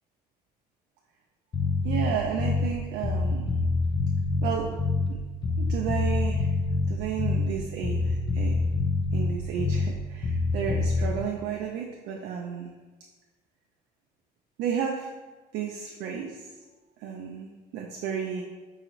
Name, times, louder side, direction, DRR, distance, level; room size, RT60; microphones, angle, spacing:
Bass guitar, 1.5-2.8 3.0-5.2 5.4-7.6 7.8-10.0 10.2-11.1, left 3 dB, 25° left, 0.4 m, -26 dB
voice 1, 1.8-3.6 4.4-4.7 5.1-5.2 5.6-6.5 6.9-8.6 9.1-12.7 14.6-15.1 15.5-16.6 17.0-18.4, right 7 dB, 85° right, 0 dB, 0.4 m, -32 dB
4.7 x 2.5 x 3.0 m, 1.3 s
cardioid pair, 110°, 17 cm